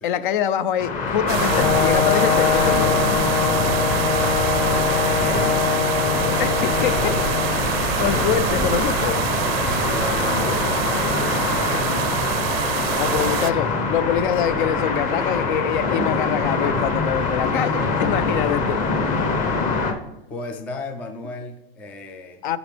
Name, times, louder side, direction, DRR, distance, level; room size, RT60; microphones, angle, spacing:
voice 1, 0.0-3.0 6.4-7.7 8.0-9.2 13.0-18.9 22.4-22.6, left 9 dB, 55° left, 15 dB, 0.6 m, -25 dB
sound 1, 0.8-19.9, left 4 dB, 25° left, 1.1 m, -24 dB
sound 2, 1.3-13.5, right 13 dB, 70° right, 0.6 m, -26 dB
Brass instrument, 1.5-7.6, left 9 dB, 90° left, 0.7 m, -23 dB
voice 2, 7.5-8.4 9.0-12.2 20.3-22.5, left 2 dB, 5° left, 5 dB, 0.3 m, -37 dB
14.5 x 5.0 x 3.4 m, 0.94 s
supercardioid pair, 150°, 31 cm